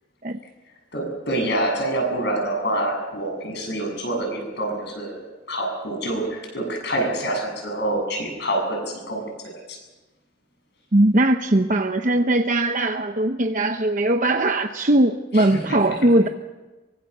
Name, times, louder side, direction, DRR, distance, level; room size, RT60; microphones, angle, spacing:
voice 1, 0.9-9.8 15.3-15.8, right 1 dB, 55° left, 2 dB, 7.9 m, -26 dB
voice 2, 10.9-16.3, right 1 dB, 40° right, 5 dB, 0.9 m, -20 dB
24.0 x 23.5 x 6.8 m, 1.2 s
head